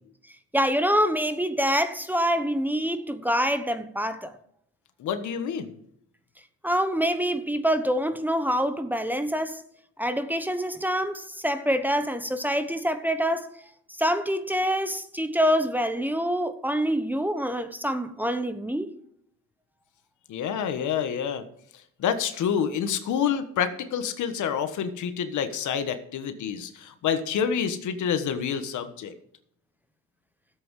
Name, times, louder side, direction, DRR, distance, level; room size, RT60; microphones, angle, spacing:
voice 1, 0.5-4.3 6.6-9.6 10.0-13.5 14.0-18.9, equal, 5° right, 1.0 m, -26 dB
voice 2, 5.0-5.8 20.3-21.4 22.0-29.1, left 7 dB, 75° left, 1.4 m, -28 dB
13.5 x 7.9 x 4.8 m
cardioid pair, 90°, 30 cm